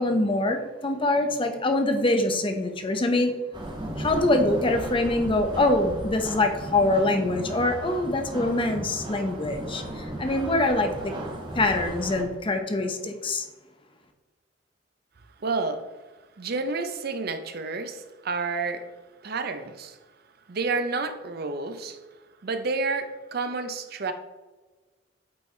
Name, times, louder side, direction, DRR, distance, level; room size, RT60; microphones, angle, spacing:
voice 1, 0.0-3.3 4.0-11.1 11.5-13.5, left 2 dB, 30° left, 5 dB, 0.6 m, -24 dB
sound 1, 3.5-12.2, right 1 dB, 25° right, 1.2 m, -35 dB
voice 2, 15.4-15.8 16.4-18.8 19.2-20.0 20.5-22.0 22.4-24.1, right 3 dB, 55° right, 8 dB, 0.6 m, -30 dB
8.4 x 4.7 x 3.2 m, 1.2 s
head